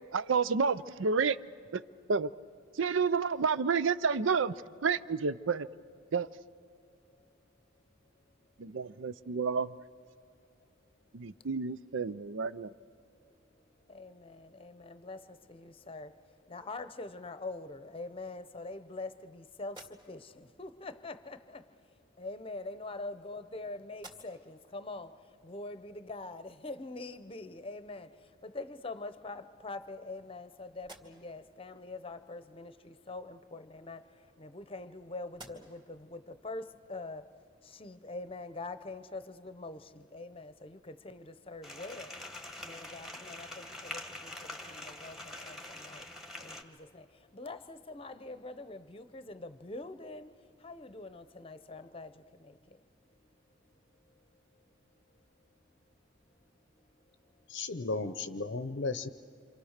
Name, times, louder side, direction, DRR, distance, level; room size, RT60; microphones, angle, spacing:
voice 1, 0.1-1.4 1.7-1.8 2.1-2.3 2.8-4.5 4.8-5.7 6.1-6.3 8.6-9.7 11.1-12.7, right 5 dB, 70° right, 16 dB, 0.6 m, -30 dB
voice 2, 13.9-15.2 15.5-16.1 16.5-19.8 20.1-21.6 22.2-25.1 25.4-28.1 28.4-34.0 34.4-36.6 36.9-37.2 37.7-42.2 42.6-44.3 44.7-46.0 46.4-47.0 47.3-50.3 50.6-52.1, left 2 dB, 25° left, 12 dB, 0.8 m, -44 dB
sound 1, 19.6-20.5 21.6-21.8 22.7-23.6 23.9-24.6 25.1-25.2 27.9-28.0 28.4-29.1 29.7-30.4 30.7-31.5 33.5-34.9 35.3-36.0, right 2 dB, 20° right, 2.3 m, -56 dB
sound 2, 41.6-46.6, left 1 dB, ahead, 1.5 m, -44 dB
voice 3, 57.5-59.1, left 3 dB, 60° left, 11 dB, 0.7 m, -35 dB
28.0 x 26.5 x 6.6 m, 2.3 s
head